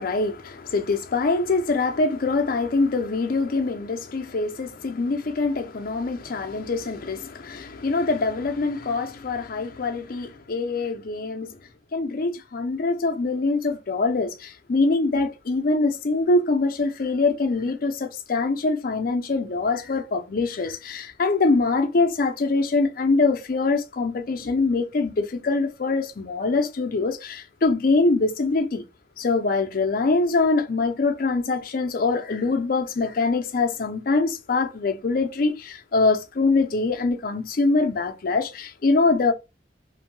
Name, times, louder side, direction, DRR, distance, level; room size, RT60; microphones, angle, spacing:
voice 1, 0.0-11.5 11.9-28.8 29.2-39.3, left 3 dB, 55° left, 0.5 m, -24 dB
2.6 x 2.1 x 3.0 m
head